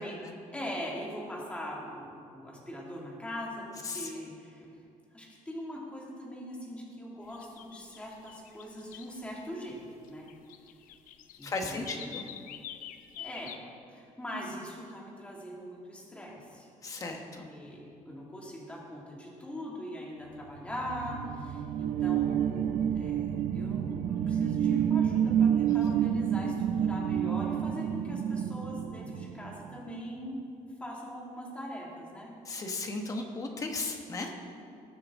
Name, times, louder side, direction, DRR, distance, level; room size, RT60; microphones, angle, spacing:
voice 1, 0.5-4.7 5.1-9.8 10.1-10.3 11.4-12.1 13.2-13.6 13.9-16.7 17.1-30.4 30.8-32.3, equal, 10° left, -4 dB, 2.2 m, -41 dB
sound 1, 7.3-9.3 10.0-13.6, left 11 dB, 75° left, 0.7 m, -46 dB
voice 2, 11.4-12.2 16.8-17.5 25.6-25.7 32.5-34.4, left 3 dB, 25° left, 3 dB, 1.2 m, -36 dB
sound 2, 20.5-29.8, right 9 dB, 60° right, 0.7 m, -29 dB
20.0 x 8.8 x 3.7 m, 2.5 s
cardioid pair, 175°, 14 cm